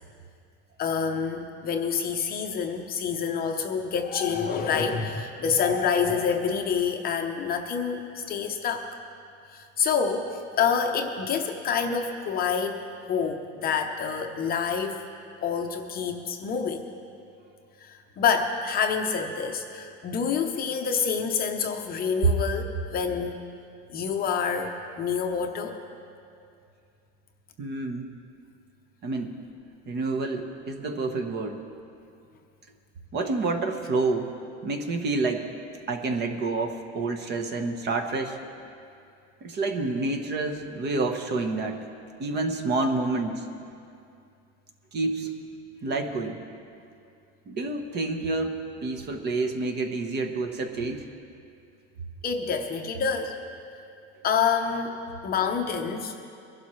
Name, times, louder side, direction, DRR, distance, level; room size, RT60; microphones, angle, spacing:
voice 1, 0.8-8.0 8.3-8.9 9.5-15.0 15.4-16.9 17.8-22.6 22.9-23.4 23.9-25.8 52.2-53.3 54.2-55.0 55.2-56.1, left 6 dB, 30° left, 4 dB, 0.8 m, -27 dB
voice 2, 27.6-28.1 29.0-29.4 29.9-31.6 33.1-34.3 34.6-35.5 35.9-38.4 39.4-41.9 42.2-43.5 44.9-45.3 45.8-46.4 47.5-51.0, right 3 dB, 30° right, 5 dB, 1.1 m, -28 dB
22.5 x 12.0 x 3.2 m, 2.5 s
supercardioid pair, 155°, 33 cm